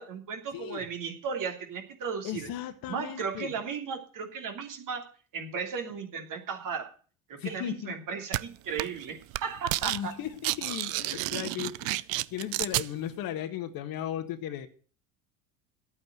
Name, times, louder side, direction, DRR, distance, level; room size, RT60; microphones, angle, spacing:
voice 1, 0.0-2.5 2.9-5.0 5.3-6.9 7.3-10.1, right 6 dB, 50° right, 3.0 m, -35 dB
voice 2, 0.5-0.8 2.2-3.5 7.4-8.0 9.8-14.7, left 11 dB, 55° left, 1.7 m, -36 dB
sound 1, 8.3-8.4 8.8-9.0 9.3-10.0 10.3-12.9, right 20 dB, 70° right, 0.6 m, -30 dB
10.5 x 8.7 x 7.9 m
hypercardioid pair, 75°, 41 cm